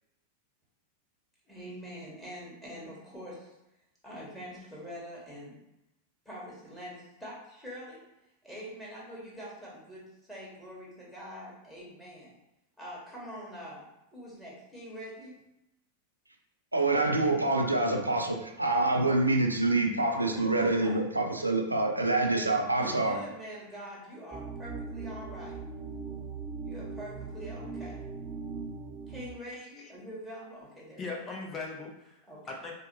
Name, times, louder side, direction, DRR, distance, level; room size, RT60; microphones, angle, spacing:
voice 1, 1.5-3.5 4.0-5.6 6.2-8.1 8.4-12.3 12.8-15.4 20.1-21.0 22.8-25.6 26.6-28.1 29.1-31.1 32.3-32.6, equal, 5° left, -6 dB, 1.5 m, -44 dB
voice 2, 16.7-23.2, right 2 dB, 85° right, 2 dB, 0.5 m, -26 dB
sound 1, 24.3-29.3, right 4 dB, 15° right, 0.3 m, -40 dB
voice 3, 29.5-29.9 31.0-32.2 32.5-32.7, left 3 dB, 25° left, 0 dB, 0.6 m, -39 dB
4.6 x 2.1 x 3.1 m, 0.89 s
figure-of-eight pair, 90°, 0 cm